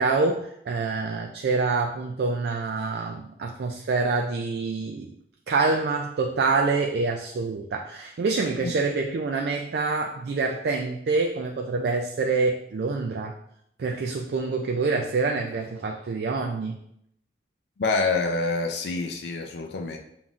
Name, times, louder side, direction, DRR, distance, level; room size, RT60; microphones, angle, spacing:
voice 1, 0.0-5.1 5.5-13.3 13.8-16.8, right 4 dB, 65° right, 2 dB, 0.3 m, -26 dB
voice 2, 17.8-20.0, left 3 dB, 75° left, 4 dB, 0.4 m, -26 dB
7.0 x 2.6 x 2.4 m, 0.74 s
head